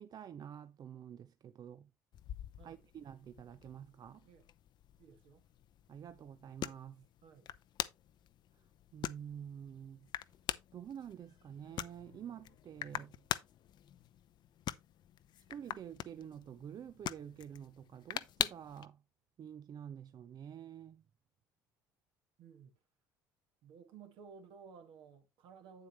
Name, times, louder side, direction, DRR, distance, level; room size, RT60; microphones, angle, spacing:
voice 1, 0.0-1.9 2.6-4.3 5.9-7.1 8.5-8.6 8.9-10.1 10.7-13.2 15.4-19.0 19.4-21.0, right 9 dB, 45° right, 0.6 m, -48 dB
sound 1, 2.1-18.9, left 11 dB, 50° left, 0.6 m, -44 dB
voice 2, 5.0-5.4 7.2-7.5 22.4-22.8 23.6-25.9, right 6 dB, 65° right, 1.8 m, -56 dB
8.6 x 7.8 x 3.1 m
hypercardioid pair, 65°, 9 cm